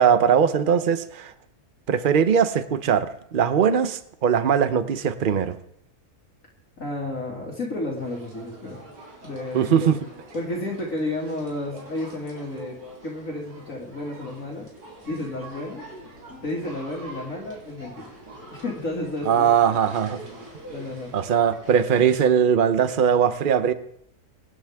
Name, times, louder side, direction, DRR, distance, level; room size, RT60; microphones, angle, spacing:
voice 1, 0.0-1.3 1.9-5.6 9.5-10.0 19.3-20.2 21.1-23.7, right 8 dB, 45° right, 0.8 m, -20 dB
voice 2, 6.8-8.9 9.2-9.9 10.3-12.8 13.0-14.7 15.1-15.9 16.4-18.1 18.5-19.8 20.7-21.1, left 2 dB, 55° left, 2.7 m, -32 dB
sound 1, 7.9-22.0, right 1 dB, 75° right, 5.0 m, -45 dB
sound 2, 15.0-22.3, equal, ahead, 3.9 m, -53 dB
25.0 x 10.0 x 3.6 m
omnidirectional pair, 1.6 m